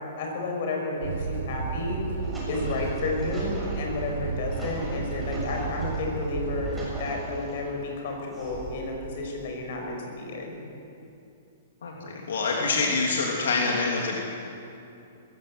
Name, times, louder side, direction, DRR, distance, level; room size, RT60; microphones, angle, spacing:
voice 1, 0.2-2.0 2.5-10.5, left 3 dB, 55° left, 1 dB, 6.0 m, -31 dB
sound 1, 1.0-7.1, right 5 dB, 85° right, 2.5 m, -32 dB
sound 2, 2.2-6.0 6.4-7.7 8.3-9.0, equal, ahead, 6.7 m, -41 dB
voice 2, 11.8-14.2, left 3 dB, 90° left, -1 dB, 3.0 m, -26 dB
20.5 x 16.5 x 8.1 m, 2.7 s
hypercardioid pair, 160°, 0 cm